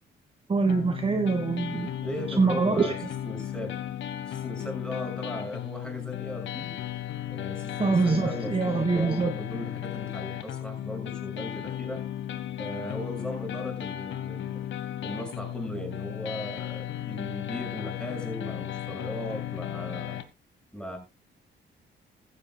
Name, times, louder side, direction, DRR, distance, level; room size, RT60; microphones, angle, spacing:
voice 1, 0.5-1.9 2.4-2.9 7.8-9.3, right 4 dB, 30° right, 6 dB, 1.5 m, -24 dB
sound 1, 0.7-20.2, left 11 dB, 70° left, 1.3 m, -35 dB
voice 2, 2.0-3.0 3.2-3.8 4.3-6.7 7.3-12.0 12.6-14.6 15.0-20.2 20.7-21.0, equal, 5° left, 3 dB, 6.5 m, -38 dB
15.5 x 12.5 x 2.3 m, 0.26 s
cardioid pair, 90°, 20 cm